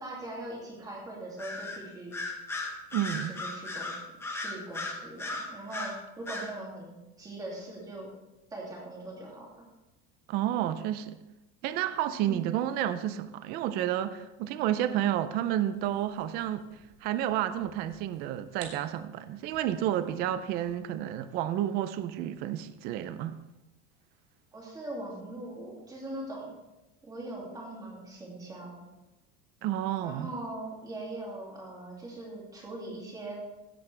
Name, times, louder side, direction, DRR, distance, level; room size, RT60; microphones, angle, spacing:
voice 1, 0.0-2.2 3.4-3.9 4.3-8.1 8.5-9.5 12.3-12.5 24.5-26.5 27.0-28.8 30.0-33.4, right 2 dB, 10° right, 2.5 m, -41 dB
Bird vocalization bird call bird song, 1.4-1.8 2.1-5.9 6.3-6.5, left 2 dB, 10° left, 1.1 m, -36 dB
voice 2, 2.9-3.3 10.3-11.2 11.6-16.7 17.0-23.4 29.6-30.3, right 11 dB, 35° right, 0.4 m, -30 dB
sound 1, 15.6-21.0, right 5 dB, 85° right, 2.8 m, -54 dB
16.0 x 8.1 x 3.3 m
cardioid pair, 180°, 30 cm